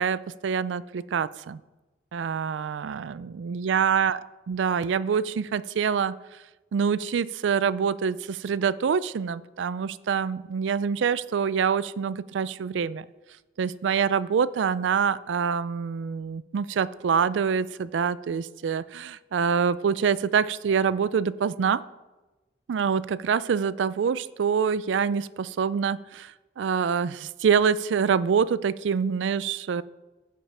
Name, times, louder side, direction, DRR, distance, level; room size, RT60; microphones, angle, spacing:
voice 1, 0.0-1.6 2.1-4.2 4.5-6.2 6.7-13.1 13.6-21.8 22.7-29.8, right 6 dB, 85° right, 18 dB, 0.4 m, -25 dB
15.5 x 5.4 x 4.3 m, 1.1 s
head